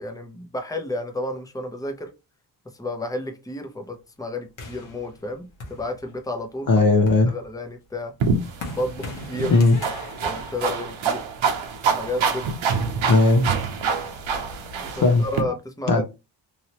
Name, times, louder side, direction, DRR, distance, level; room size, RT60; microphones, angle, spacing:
voice 1, 0.0-2.1 2.8-6.7 7.3-8.1 8.7-9.5 10.2-11.2 11.9-12.5 14.8-16.0, left 1 dB, 5° left, 0.8 m, -31 dB
sound 1, 4.6-6.4 6.9-11.5, left 2 dB, 80° left, 1.2 m, -40 dB
voice 2, 6.7-7.3 9.5-9.8 13.1-13.5 14.9-15.2 15.9-16.0, left 3 dB, 45° left, 0.8 m, -17 dB
sound 2, 8.2-15.4, right 5 dB, 80° right, 0.8 m, -26 dB
3.1 x 2.8 x 2.9 m
cardioid pair, 55°, 47 cm